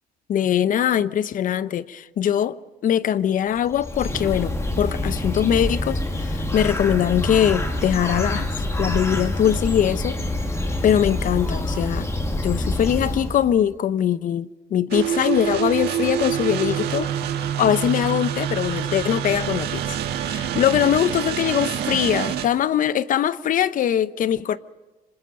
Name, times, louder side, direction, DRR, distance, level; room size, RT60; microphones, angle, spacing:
voice 1, 0.3-2.6 2.8-8.5 8.8-10.2 10.8-12.1 12.4-17.1 17.4-24.6, left 10 dB, 55° left, 0.8 m, -22 dB
Bird, 3.6-13.6, left 1 dB, 15° left, 2.5 m, -26 dB
sound 1, 14.9-22.5, right 10 dB, 75° right, 1.7 m, -26 dB
26.0 x 25.5 x 5.4 m
cardioid pair, 110°, 17 cm